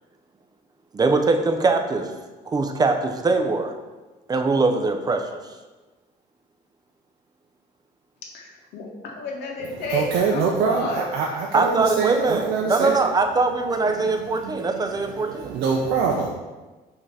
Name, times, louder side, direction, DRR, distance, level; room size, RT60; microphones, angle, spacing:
voice 1, 0.9-2.1 2.5-3.7 4.3-5.2 11.5-15.5, right 3 dB, 25° right, 5 dB, 0.5 m, -22 dB
voice 2, 8.3-11.0, left 3 dB, 85° left, -1 dB, 0.9 m, -32 dB
voice 3, 9.6-13.0 13.8-16.3, right 5 dB, 75° right, 0 dB, 0.5 m, -25 dB
5.7 x 2.8 x 3.3 m, 1.2 s
cardioid pair, 110°, 17 cm